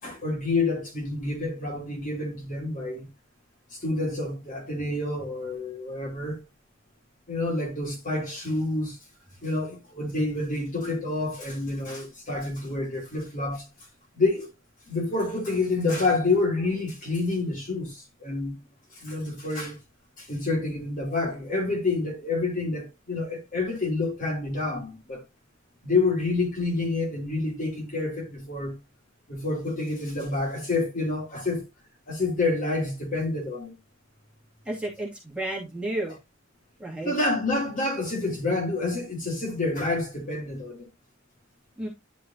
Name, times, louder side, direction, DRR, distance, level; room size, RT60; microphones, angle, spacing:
voice 1, 0.0-3.1 3.8-6.4 7.3-9.0 9.4-13.6 14.1-14.5 14.9-18.6 19.0-19.8 20.2-25.2 25.8-28.7 29.3-31.6 32.1-33.7 37.0-40.9, left 3 dB, 40° left, 3.2 m, -28 dB
voice 2, 34.7-36.2 36.8-37.1 41.8-41.9, right 1 dB, 5° right, 2.5 m, -32 dB
10.5 x 5.3 x 2.8 m
head